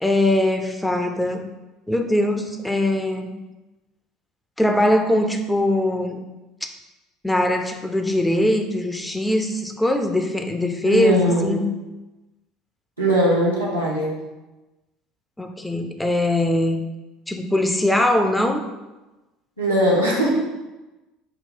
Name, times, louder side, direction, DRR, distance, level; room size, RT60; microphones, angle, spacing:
voice 1, 0.0-1.4 1.9-3.3 4.6-6.2 7.2-11.7 15.4-16.8 17.3-18.7, left 1 dB, 5° left, 5 dB, 0.5 m, -21 dB
voice 2, 10.8-11.6 13.0-14.2 19.6-20.5, right 1 dB, 85° right, -5 dB, 1.0 m, -20 dB
5.8 x 2.3 x 3.7 m, 1.1 s
figure-of-eight pair, 65°, 0 cm